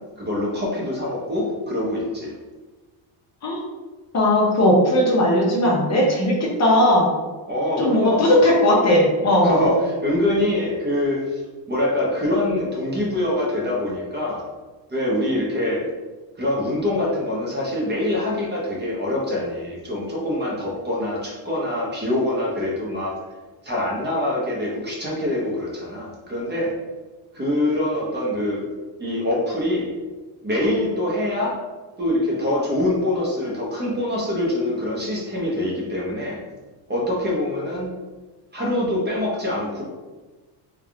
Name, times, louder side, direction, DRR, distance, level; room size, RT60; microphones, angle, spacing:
voice 1, 0.2-2.3 7.5-8.4 9.4-11.4 11.7-14.4 14.9-15.8 16.4-23.2 23.6-26.7 27.3-28.6 29.0-29.9 30.4-31.6 32.0-36.4 36.9-37.9 38.5-39.8, left 1 dB, 25° right, -4 dB, 0.9 m, -24 dB
voice 2, 4.1-7.1 7.8-9.5, left 1 dB, 35° left, -3 dB, 0.8 m, -17 dB
3.5 x 2.4 x 3.4 m, 1.3 s
cardioid pair, 120°, 45 cm